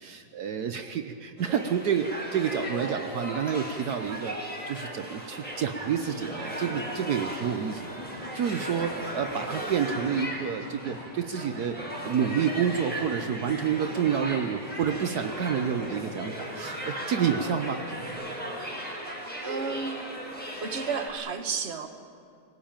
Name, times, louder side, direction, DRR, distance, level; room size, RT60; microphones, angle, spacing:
voice 1, 0.0-4.4 4.7-17.8, right 7 dB, 70° right, 7 dB, 1.4 m, -29 dB
sound 1, 1.4-21.1, equal, 20° right, 4.3 m, -37 dB
sound 2, 5.8-18.1, left 1 dB, 85° left, 4.8 m, -44 dB
voice 2, 19.4-20.2 20.6-21.9, right 6 dB, 40° right, 7 dB, 1.5 m, -32 dB
26.0 x 18.0 x 8.9 m, 2.4 s
omnidirectional pair, 1.8 m